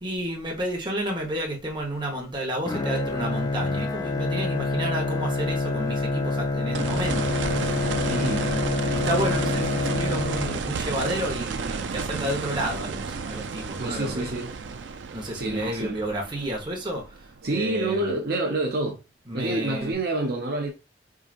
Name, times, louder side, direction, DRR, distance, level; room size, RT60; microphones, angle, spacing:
voice 1, 0.0-7.7 8.0-14.3 15.1-17.0 17.5-18.1 19.3-20.0, right 1 dB, 25° right, 1.2 m, -31 dB
Bowed string instrument, 2.7-11.0, left 3 dB, 20° left, 0.4 m, -27 dB
sound 1, 6.7-17.6 19.9-20.0, right 5 dB, 80° right, 0.5 m, -32 dB
voice 2, 8.1-8.5 13.8-14.5 15.3-16.0 17.4-19.0 19.3-20.7, right 2 dB, 60° right, 0.9 m, -28 dB
4.8 x 2.8 x 2.5 m
head